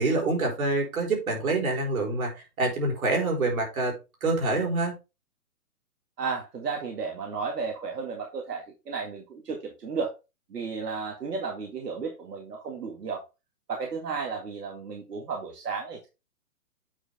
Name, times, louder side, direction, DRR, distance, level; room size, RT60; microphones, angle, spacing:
voice 1, 0.0-3.9 4.2-4.9, right 2 dB, 60° right, 1 dB, 3.9 m, -26 dB
voice 2, 6.2-10.1 10.5-13.2 13.7-16.1, right 5 dB, 85° right, 1 dB, 2.1 m, -33 dB
8.6 x 4.6 x 3.4 m, 0.27 s
hypercardioid pair, 165°, 46 cm